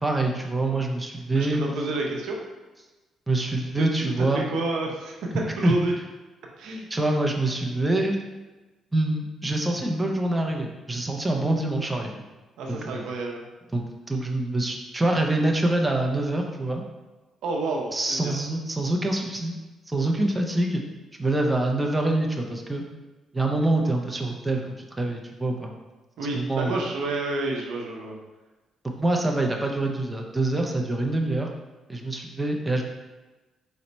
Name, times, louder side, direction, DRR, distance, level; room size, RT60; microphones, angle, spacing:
voice 1, 0.0-1.6 3.3-4.4 5.6-5.8 6.9-8.2 8.9-12.2 12.9-13.0 13.7-16.8 17.9-19.5 19.9-20.8 21.2-22.8 23.3-25.7 26.3-26.8 28.8-31.5 31.9-32.8, right 2 dB, 15° right, 1 dB, 0.5 m, -25 dB
voice 2, 1.3-2.4 3.8-4.3 4.5-5.2 5.6-5.9 6.6-6.9 12.6-13.4 17.4-18.3 26.2-28.1, right 2 dB, 85° right, 0 dB, 0.7 m, -29 dB
4.2 x 2.1 x 4.0 m, 1.2 s
cardioid pair, 90°, 0 cm